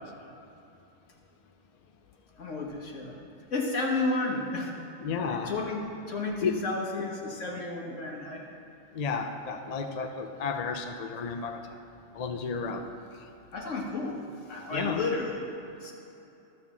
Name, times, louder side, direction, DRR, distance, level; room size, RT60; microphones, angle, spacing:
voice 1, 2.4-3.2 3.5-4.7 5.3-8.5 13.5-15.5 15.8-15.9, left 3 dB, 70° left, -1 dB, 1.6 m, -32 dB
voice 2, 5.0-5.5 6.4-6.6 7.5-7.6 8.9-11.6 12.1-12.9 13.2-13.3 14.7-15.0, left 5 dB, 50° left, 6 dB, 0.4 m, -32 dB
12.5 x 4.3 x 7.2 m, 2.8 s
omnidirectional pair, 1.4 m